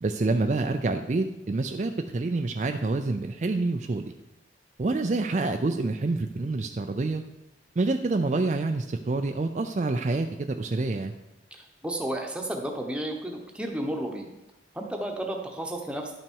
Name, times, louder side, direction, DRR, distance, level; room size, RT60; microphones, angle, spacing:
voice 1, 0.0-4.1 4.8-7.2 7.8-11.1, right 3 dB, 40° right, 6 dB, 0.4 m, -27 dB
voice 2, 11.5-14.3 14.7-16.1, right 1 dB, 5° right, 1 dB, 1.0 m, -32 dB
11.5 x 5.9 x 4.6 m, 0.94 s
head